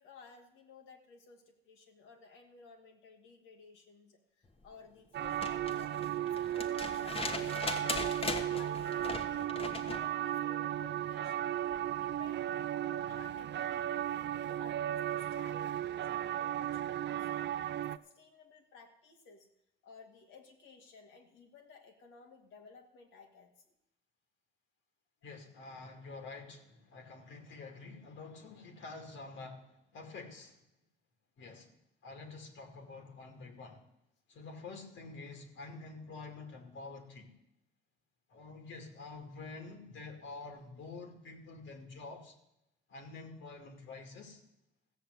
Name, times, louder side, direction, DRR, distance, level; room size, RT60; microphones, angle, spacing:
voice 1, 0.0-7.7 8.2-12.5 12.8-14.1 14.4-19.5 19.8-23.5, left 5 dB, 90° left, 2 dB, 2.1 m, -56 dB
sound 1, 5.1-18.0, right 11 dB, 60° right, 0.5 m, -35 dB
sound 2, 5.2-10.1 11.7-11.8, left 3 dB, 30° left, 1.3 m, -39 dB
voice 2, 25.2-30.6 31.4-31.7 32.0-33.8 34.3-37.3 38.3-42.4 42.9-44.4, left 3 dB, 75° left, 4 dB, 2.3 m, -48 dB
15.0 x 6.9 x 8.0 m, 0.85 s
cardioid pair, 90°, 20 cm